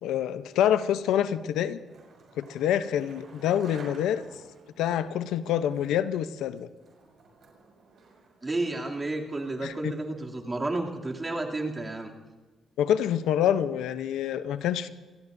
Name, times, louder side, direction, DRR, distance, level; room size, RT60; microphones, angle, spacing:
voice 1, 0.0-1.8 2.4-4.2 4.8-6.7 9.6-9.9 12.8-14.9, left 10 dB, 85° left, 12 dB, 0.7 m, -26 dB
Skateboard, 1.5-9.8, right 4 dB, 60° right, 5.8 m, -52 dB
voice 2, 8.4-12.1, right 2 dB, 25° right, -1 dB, 2.8 m, -31 dB
27.5 x 18.5 x 2.7 m, 1.3 s
cardioid pair, 90°, 0 cm